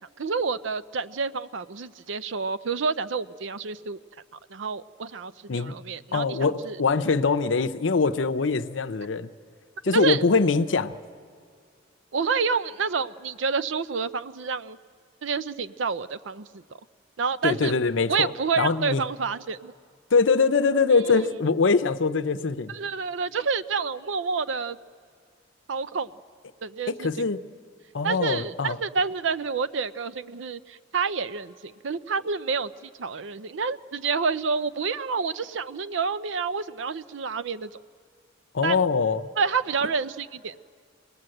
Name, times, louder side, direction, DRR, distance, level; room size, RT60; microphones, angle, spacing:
voice 1, 0.2-4.0 4.5-6.4 6.6-6.8 9.9-10.2 12.1-14.8 15.2-16.6 17.2-17.7 18.1-19.7 21.1-21.2 22.7-24.8 25.7-26.1 26.6-27.1 28.0-37.7 38.6-38.8 39.4-40.6, right 5 dB, 80° right, 14 dB, 0.6 m, -28 dB
voice 2, 6.1-9.3 9.8-10.9 17.4-18.3 18.6-19.0 20.1-22.7 26.9-27.4 27.9-28.8 38.5-39.3, left 4 dB, 85° left, 9 dB, 0.7 m, -23 dB
27.0 x 19.5 x 7.8 m, 2.1 s
head